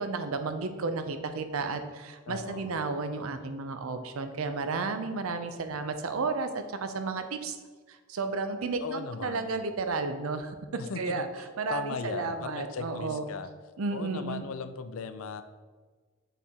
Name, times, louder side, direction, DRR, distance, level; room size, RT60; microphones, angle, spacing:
voice 1, 0.0-7.6 7.9-10.6 11.0-11.3 11.6-13.2 13.8-14.5, right 4 dB, 90° right, 8 dB, 0.6 m, -32 dB
voice 2, 2.3-2.8 8.8-9.5 10.8-11.3 11.7-13.5 13.9-15.4, left 5 dB, 85° left, 11 dB, 0.5 m, -37 dB
6.8 x 4.3 x 3.7 m, 1.4 s
head